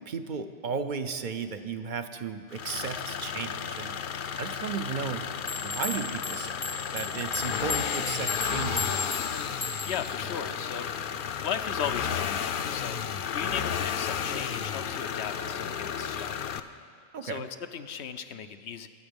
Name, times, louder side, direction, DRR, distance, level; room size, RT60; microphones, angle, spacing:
voice 1, 0.0-4.0 4.4-5.3 5.6-9.3 17.1-17.4, right 5 dB, 55° right, 8 dB, 0.7 m, -35 dB
sound 1, 2.5-16.6, left 7 dB, 60° left, 0.7 m, -33 dB
sound 2, 5.5-10.1, left 3 dB, 20° left, 0.5 m, -35 dB
voice 2, 9.8-11.0 11.4-16.4 17.2-18.9, left 7 dB, 90° left, 9 dB, 1.0 m, -37 dB
23.5 x 7.9 x 5.3 m, 2.3 s
omnidirectional pair, 1.1 m